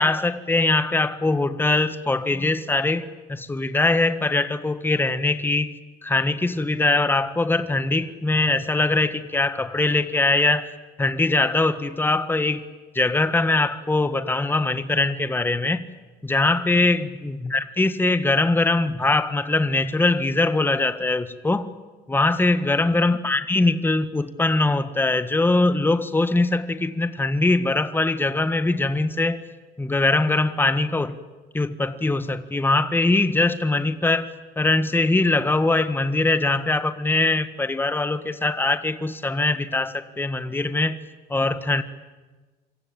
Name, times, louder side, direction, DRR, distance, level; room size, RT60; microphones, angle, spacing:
voice 1, 0.0-5.7 6.0-10.7 11.0-12.6 12.9-15.8 16.2-21.7 22.1-29.4 29.8-31.2 31.5-34.3 34.6-41.0 41.3-41.8, left 2 dB, 10° left, 12 dB, 1.7 m, -22 dB
27.0 x 25.0 x 8.9 m, 1.3 s
cardioid pair, 110°, 17 cm